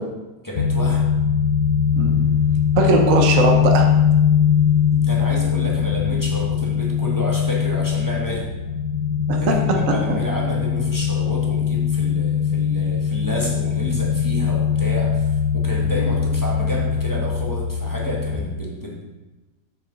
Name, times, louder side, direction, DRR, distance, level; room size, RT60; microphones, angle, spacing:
voice 1, 0.4-1.1 4.9-8.5 9.4-19.0, equal, 10° left, -4 dB, 1.4 m, -30 dB
sound 1, 0.6-18.4, left 7 dB, 60° left, 0.7 m, -21 dB
voice 2, 1.9-2.5 2.8-3.8 9.3-9.6 9.9-10.0, right 3 dB, 55° right, 1 dB, 1.2 m, -20 dB
7.9 x 6.6 x 4.0 m, 1.1 s
omnidirectional pair, 1.9 m